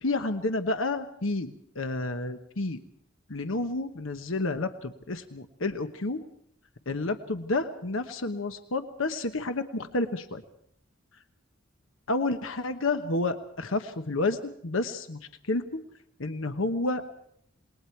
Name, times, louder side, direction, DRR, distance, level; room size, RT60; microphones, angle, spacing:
voice 1, 0.0-2.8 3.3-6.2 6.9-10.4 12.1-15.6 16.2-17.1, left 2 dB, 75° left, 8 dB, 1.2 m, -30 dB
27.5 x 20.5 x 4.6 m, 0.70 s
head